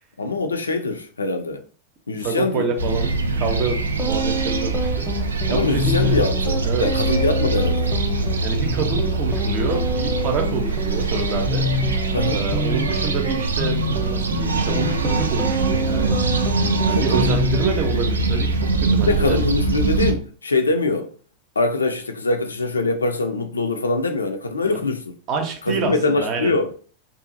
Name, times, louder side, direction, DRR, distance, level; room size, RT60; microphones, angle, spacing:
voice 1, 0.2-1.6 2.1-2.7 5.5-8.0 12.1-12.4 16.8-17.4 19.0-21.1 21.6-25.1 25.7-26.7, left 3 dB, 75° left, 0.4 m, -23 dB
voice 2, 2.2-5.1 5.5-6.2 6.6-6.9 8.4-11.7 12.3-16.2 16.8-19.4 24.6-24.8 25.3-26.6, right 5 dB, 40° right, 0.6 m, -27 dB
atmo - village day, 2.8-20.1, right 3 dB, 70° right, 0.3 m, -23 dB
sound 1, 3.9-17.9, left 1 dB, ahead, 0.7 m, -27 dB
2.6 x 2.4 x 2.5 m
figure-of-eight pair, 90°, 0 cm